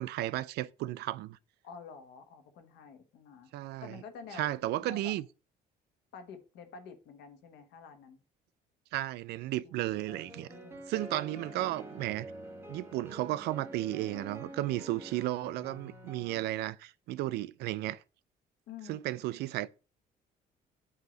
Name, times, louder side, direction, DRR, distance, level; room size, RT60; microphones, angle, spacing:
voice 1, 0.0-1.4 3.5-4.0 4.3-5.2 8.9-10.5 10.9-12.3 12.7-18.0 18.9-19.7, right 15 dB, 80° right, 0.4 m, -34 dB
voice 2, 1.6-3.5 3.8-4.5 4.8-5.1 6.1-8.2 9.6-10.8 18.7-19.2, left 6 dB, 85° left, 1.2 m, -49 dB
sound 1, 10.0-16.4, right 1 dB, 15° right, 1.2 m, -47 dB
8.1 x 2.8 x 5.1 m
cardioid pair, 110°, 17 cm